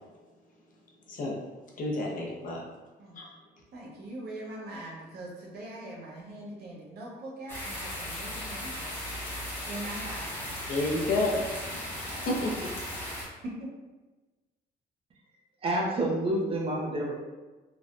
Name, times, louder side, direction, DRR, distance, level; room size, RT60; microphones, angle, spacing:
voice 1, 1.8-2.6 3.2-3.3 10.7-11.5 12.3-12.7, left 2 dB, 45° left, -2 dB, 0.5 m, -29 dB
voice 2, 3.7-9.0 9.7-10.3 11.3-12.4 13.4-13.5, right 1 dB, 60° right, -3 dB, 0.8 m, -42 dB
sound 1, 7.5-13.2, left 1 dB, 10° left, 0.7 m, -37 dB
voice 3, 15.6-17.2, right 1 dB, 30° right, -2 dB, 0.5 m, -28 dB
3.3 x 2.1 x 2.5 m, 1.2 s
cardioid pair, 175°, 18 cm